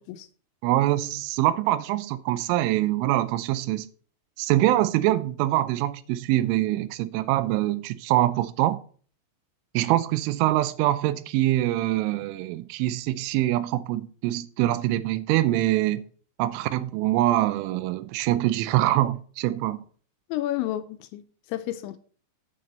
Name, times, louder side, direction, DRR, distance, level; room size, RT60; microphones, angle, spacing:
voice 1, 0.6-3.9 4.4-8.8 9.7-16.0 16.4-19.8, right 15 dB, 85° right, 3.1 m, -24 dB
voice 2, 20.3-21.2 21.5-22.0, left 14 dB, 80° left, 2.8 m, -30 dB
8.2 x 7.8 x 4.3 m
omnidirectional pair, 5.6 m